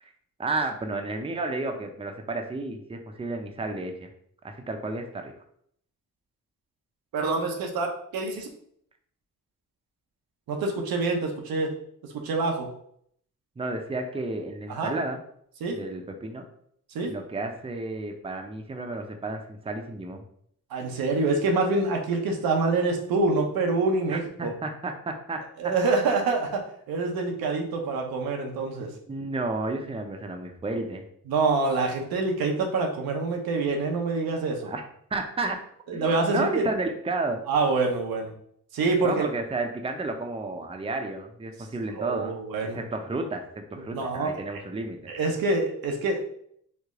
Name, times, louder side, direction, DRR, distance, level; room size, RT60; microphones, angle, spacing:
voice 1, 0.4-4.1 4.4-5.3 13.6-15.2 15.7-16.4 17.1-20.2 24.1-25.4 28.8-31.0 34.6-34.8 35.1-35.6 35.9-36.1 36.3-37.4 39.0-42.4 42.7-45.0, right 2 dB, 15° right, 4 dB, 0.5 m, -32 dB
voice 2, 7.1-7.9 8.1-8.5 10.5-11.7 12.2-12.7 14.7-14.9 15.6-15.8 16.9-17.1 20.7-24.5 25.6-26.6 26.9-28.9 31.3-34.7 35.9-36.6 37.5-38.3 38.7-39.3 42.0-42.8 43.9-44.6 45.1-46.3, right 3 dB, 85° right, 1 dB, 0.7 m, -26 dB
3.2 x 2.1 x 3.6 m, 0.67 s
cardioid pair, 55°, 35 cm